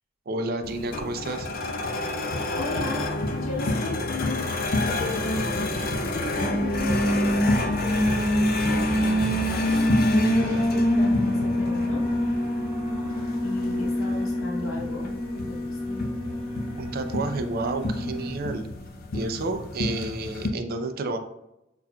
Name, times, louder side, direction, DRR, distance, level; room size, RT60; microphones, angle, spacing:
voice 1, 0.3-1.5 16.8-18.7 19.1-21.2, right 2 dB, 50° right, 7 dB, 0.4 m, -30 dB
sound 1, 0.6-20.5, left 2 dB, 45° left, 0.4 m, -30 dB
voice 2, 2.5-3.0 3.3-4.4 4.8-9.8 10.1-12.0 13.4-16.0, left 2 dB, 75° left, -3 dB, 0.8 m, -35 dB
Alarm, 4.9-18.3, equal, 25° left, 1.1 m, -26 dB
5.7 x 2.4 x 2.2 m, 0.88 s
head